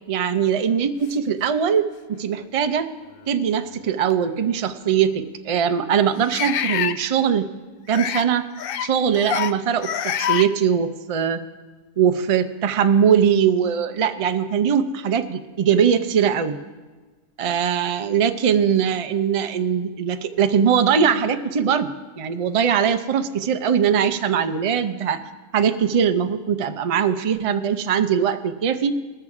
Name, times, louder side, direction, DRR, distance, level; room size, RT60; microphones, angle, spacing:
voice 1, 0.1-1.8 2.1-2.9 3.3-7.5 7.9-8.5 8.8-11.4 12.0-16.6 17.4-25.2 25.5-28.9, right 7 dB, 60° right, 8 dB, 0.3 m, -21 dB
sound 1, 1.5-1.6 2.4-2.5 4.1-4.2 6.3-7.0 7.9-8.2 8.6-8.9 9.1-9.5 9.8-10.5, left 9 dB, 70° left, 0.5 m, -25 dB
20.0 x 6.7 x 4.8 m, 1.3 s
omnidirectional pair, 1.4 m